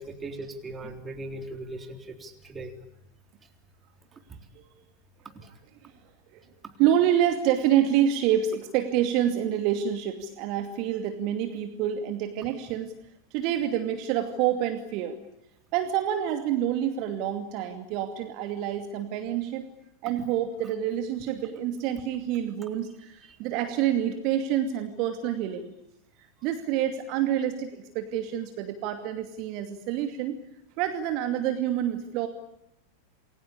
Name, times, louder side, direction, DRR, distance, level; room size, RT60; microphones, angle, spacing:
voice 1, 0.0-2.7 4.3-4.4 5.3-5.5 23.3-23.4, right 2 dB, 20° right, 6 dB, 3.8 m, -39 dB
voice 2, 6.8-12.9 13.3-15.2 15.7-19.6 20.0-25.7 26.4-30.4 30.8-32.3, right 10 dB, 40° right, 7 dB, 2.5 m, -27 dB
29.0 x 22.5 x 8.6 m, 0.83 s
figure-of-eight pair, 90°, 0 cm